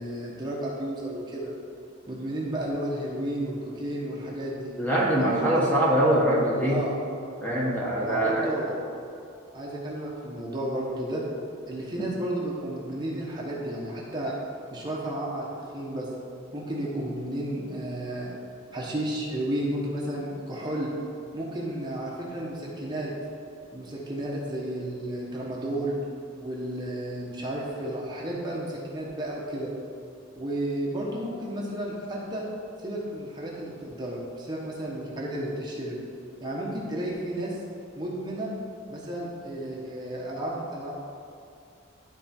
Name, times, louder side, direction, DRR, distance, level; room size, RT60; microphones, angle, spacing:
voice 1, 0.0-1.5 2.1-4.7 5.2-5.8 6.6-6.9 8.0-8.7 9.5-11.2 11.7-14.3 14.7-15.5 15.7-16.1 16.5-18.3 18.7-20.9 21.3-23.1 23.7-26.0 26.4-29.7 30.4-32.4 32.8-36.0 36.4-37.6 37.9-38.5 38.9-40.9, right 1 dB, 20° right, -4 dB, 1.2 m, -32 dB
voice 2, 4.8-6.8 7.4-8.6, right 1 dB, 10° left, -5 dB, 1.2 m, -23 dB
12.0 x 4.4 x 4.5 m, 2.5 s
head